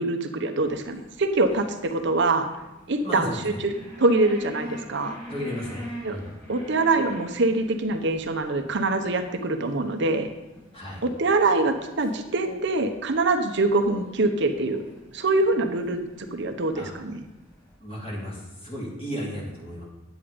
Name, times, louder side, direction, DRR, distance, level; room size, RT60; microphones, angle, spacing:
voice 1, 0.0-2.5 2.9-3.3 3.6-3.7 4.0-5.2 6.0-6.2 6.5-10.3 11.0-14.8 15.1-16.0 16.3-17.2, right 2 dB, 60° right, 6 dB, 0.9 m, -24 dB
sound 1, 0.6-17.7, equal, 10° left, 4.4 m, -45 dB
voice 2, 3.0-3.6 5.3-6.3 10.7-11.0 16.8-16.9 17.8-19.8, equal, 30° left, -4 dB, 3.2 m, -34 dB
10.0 x 8.7 x 5.2 m, 1.0 s
head